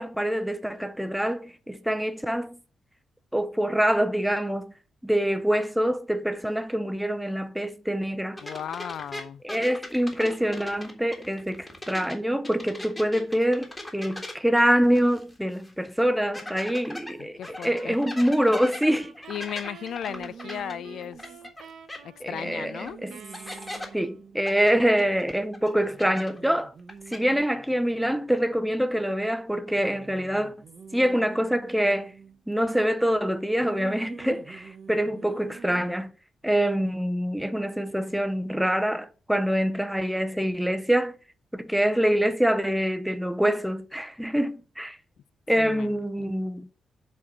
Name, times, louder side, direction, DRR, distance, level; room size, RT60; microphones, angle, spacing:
voice 1, 0.0-2.6 3.3-4.7 5.0-8.4 9.4-19.1 22.2-23.2 23.9-26.7 27.1-30.5 30.9-32.1 32.5-36.1 36.4-41.2 41.5-45.0 45.5-46.7, equal, ahead, 0.6 m, -25 dB
voice 2, 8.4-9.4 17.2-18.0 19.3-21.2 22.0-23.0 45.6-46.3, left 9 dB, 75° left, 0.4 m, -36 dB
sound 1, 8.4-12.2 12.4-15.3 15.6-15.7 16.3-21.6 21.9-22.0 22.9-23.0 23.3-23.9 24.5-26.5 26.8-27.2, left 1 dB, 15° left, 1.6 m, -39 dB
sound 2, 17.7-24.3, right 7 dB, 80° right, 0.9 m, -49 dB
sound 3, 20.0-21.7 22.2-25.2 25.4-25.5 25.8-29.2 29.8-32.5 33.5-35.8, right 5 dB, 45° right, 0.9 m, -47 dB
7.3 x 4.4 x 6.1 m
wide cardioid pair, 150°, 0 cm